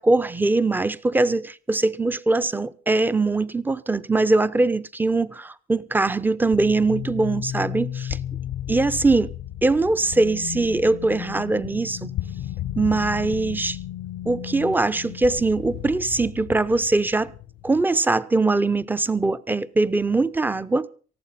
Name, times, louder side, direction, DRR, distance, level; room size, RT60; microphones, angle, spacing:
voice 1, 0.0-8.2 8.7-9.3 9.6-12.1 12.8-13.8 14.3-17.3 17.6-20.9, right 3 dB, 10° right, 0.7 m, -22 dB
sound 1, 6.5-17.8, left 12 dB, 70° left, 0.7 m, -34 dB
19.5 x 14.5 x 4.2 m
cardioid pair, 110°, 17 cm